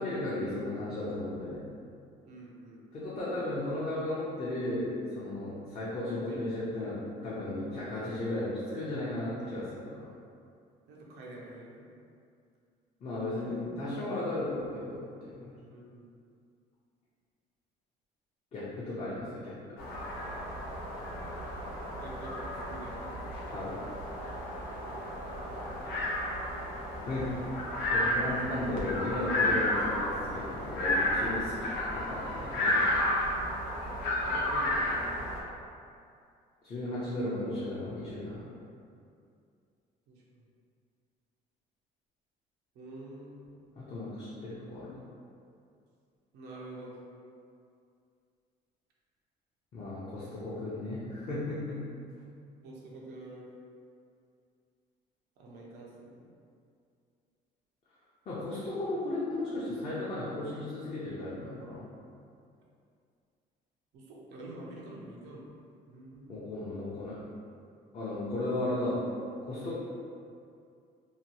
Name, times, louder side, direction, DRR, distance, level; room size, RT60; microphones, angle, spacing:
voice 1, 0.0-1.6 2.9-4.9 5.1-7.0 7.2-10.0 13.0-15.6 18.5-19.6 23.5-23.8 27.1-27.2 27.9-33.1 36.6-38.4 43.8-45.0 49.7-51.8 58.3-61.8 66.3-67.2 67.9-69.0 69.5-69.8, left 1 dB, 40° left, -9 dB, 0.6 m, -35 dB
voice 2, 2.3-2.8 6.2-6.4 7.7-7.8 10.9-11.8 13.4-13.6 15.7-16.1 22.0-23.1 24.8-26.1 26.5-26.6 27.2-27.4 34.2-35.2 40.1-40.5 42.7-43.8 46.3-47.0 52.6-53.5 55.4-56.4 63.9-65.5 65.9-66.5, right 1 dB, 85° right, -4 dB, 0.6 m, -47 dB
sound 1, 19.8-35.4, left 1 dB, 90° left, 0.6 m, -32 dB
2.9 x 2.2 x 2.8 m, 2.4 s
cardioid pair, 110°, 17 cm